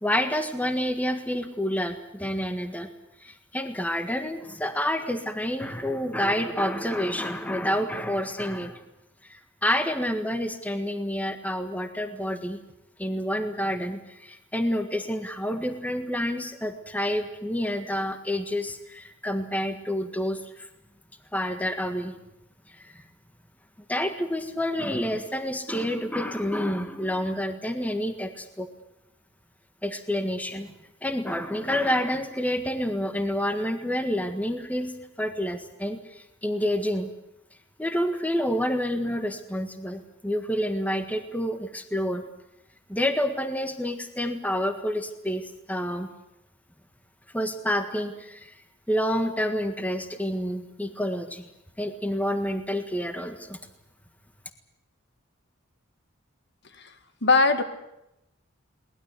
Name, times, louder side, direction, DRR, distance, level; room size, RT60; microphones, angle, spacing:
voice 1, 0.0-2.9 3.2-8.8 9.2-12.6 13.0-20.7 21.3-22.1 22.8-23.0 23.9-28.7 29.8-30.7 31.0-34.9 35.2-37.1 37.8-42.2 42.9-46.1 47.3-48.6 48.9-51.5 51.8-53.6, equal, 10° left, 8 dB, 1.6 m, -28 dB
voice 2, 57.2-57.6, left 3 dB, 60° left, 9 dB, 2.0 m, -20 dB
22.5 x 20.0 x 8.4 m, 0.87 s
head